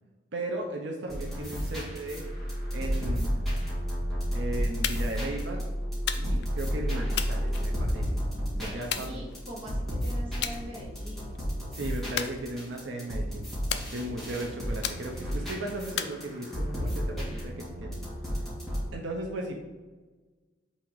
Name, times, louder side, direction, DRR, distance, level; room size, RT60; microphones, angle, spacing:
voice 1, 0.3-2.2 2.7-3.4 4.3-5.7 6.2-8.2 8.6-9.2 11.7-13.5 13.9-18.0 18.9-19.5, right 1 dB, 75° right, 1 dB, 0.8 m, -36 dB
sound 1, 1.1-18.9, equal, ahead, 1.8 m, -34 dB
sound 2, 2.1-8.0, equal, 55° right, 1.2 m, -31 dB
sound 3, 4.8-5.2 6.1-6.5 7.2-8.1 8.9-9.7 10.4-10.6 11.0-11.4 12.2-12.9 13.7-14.3 14.8-15.4 16.0-16.8, left 9 dB, 60° left, 0.4 m, -35 dB
voice 2, 8.5-11.4, equal, 30° right, -3 dB, 1.4 m, -43 dB
5.6 x 3.8 x 4.7 m, 1.3 s
head